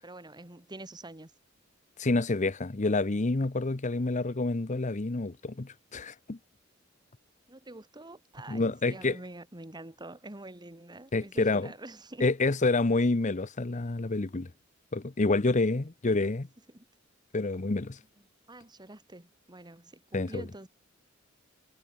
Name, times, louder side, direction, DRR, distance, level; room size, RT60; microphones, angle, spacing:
voice 1, 0.0-1.3 7.5-12.3 15.6-15.9 16.2-16.3 16.7-16.9 18.5-20.7, right 2 dB, 20° right, 2.0 m, -46 dB
voice 2, 2.0-6.4 8.5-9.2 11.1-11.7 12.2-14.5 14.9-16.5 17.3-18.0 20.1-20.4, left 3 dB, 35° left, 0.8 m, -28 dB
head